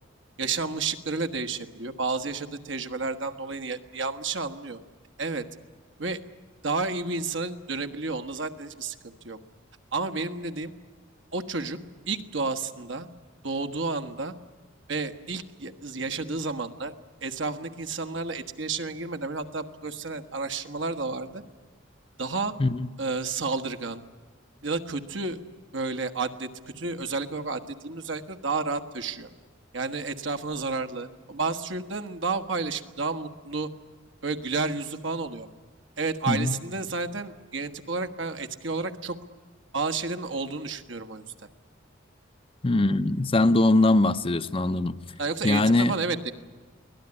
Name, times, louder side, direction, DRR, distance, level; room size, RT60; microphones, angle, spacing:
voice 1, 0.4-4.8 5.2-5.4 6.0-6.2 6.6-9.4 9.9-10.7 11.3-11.8 12.1-13.1 13.4-14.3 14.9-16.9 17.2-21.4 22.2-22.5 23.0-24.0 24.6-25.4 25.7-26.5 26.8-29.3 29.7-33.7 34.2-35.5 36.0-39.2 39.7-41.5 44.1-44.2 45.2-46.3, right 3 dB, 70° right, 1.4 m, -31 dB
voice 2, 36.3-36.6 42.6-45.0 45.4-45.9, left 2 dB, 30° left, 0.7 m, -22 dB
24.0 x 17.5 x 9.8 m
head